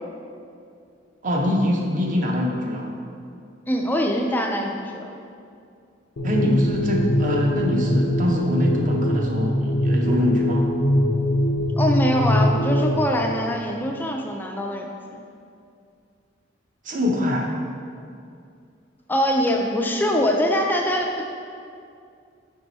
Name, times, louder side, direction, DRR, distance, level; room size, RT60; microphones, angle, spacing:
voice 1, 1.2-2.9 6.2-10.7 16.8-17.5, left 1 dB, 40° right, 0 dB, 0.7 m, -24 dB
voice 2, 3.7-5.1 11.8-15.2 19.1-21.2, equal, 10° left, 2 dB, 0.4 m, -23 dB
sound 1, 6.2-13.0, equal, 85° left, 0.7 m, -22 dB
6.0 x 4.6 x 4.0 m, 2.4 s
head